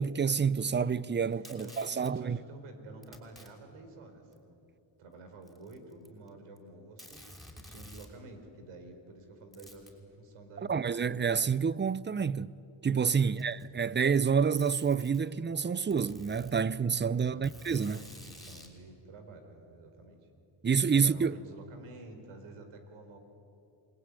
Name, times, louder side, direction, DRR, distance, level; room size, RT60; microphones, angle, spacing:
voice 1, 0.0-2.4 10.7-12.5 12.8-18.0 20.6-21.4, right 6 dB, 20° right, 0.7 m, -28 dB
Packing tape duct tape, 1.3-2.1 3.0-3.5 4.3-4.4 5.4-6.3 6.6-6.7 7.0-8.1 9.5-10.0 11.2-11.3 12.2-12.3 13.1-13.8 14.5-15.2 15.9-16.6 17.4-18.7, equal, ahead, 6.0 m, -51 dB
voice 2, 1.3-4.6 5.0-7.2 7.5-11.0 13.3-13.6 17.2-17.5 17.9-20.2 20.9-23.2, right 2 dB, 80° right, 4.6 m, -50 dB
28.0 x 21.0 x 9.9 m
cardioid pair, 75°, 49 cm